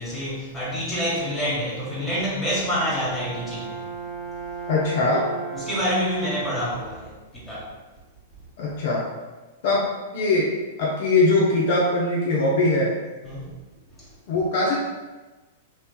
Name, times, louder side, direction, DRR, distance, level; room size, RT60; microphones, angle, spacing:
voice 1, 0.0-3.8 5.1-5.2 5.5-7.7 13.2-13.5 14.0-14.1, equal, 10° left, -8 dB, 1.4 m, -27 dB
Brass instrument, 2.5-6.9, right 5 dB, 15° right, 0.4 m, -36 dB
voice 2, 4.7-5.3 8.6-9.1 9.6-10.5 10.8-13.0 14.3-14.8, left 2 dB, 55° left, -4 dB, 0.6 m, -21 dB
3.1 x 3.0 x 2.2 m, 1.2 s
figure-of-eight pair, 100°, 0 cm